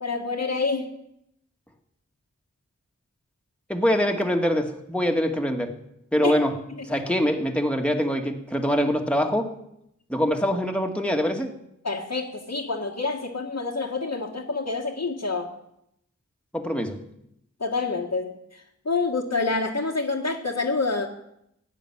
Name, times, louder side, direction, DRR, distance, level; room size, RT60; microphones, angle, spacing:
voice 1, 0.0-0.9 6.2-6.3 11.8-15.5 17.6-21.1, left 3 dB, 60° left, -3 dB, 1.6 m, -27 dB
voice 2, 3.7-5.7 6.1-9.6 10.1-11.5 16.5-17.0, equal, 5° left, 3 dB, 2.0 m, -24 dB
16.0 x 7.4 x 10.0 m, 0.80 s
wide cardioid pair, 50°, 30 cm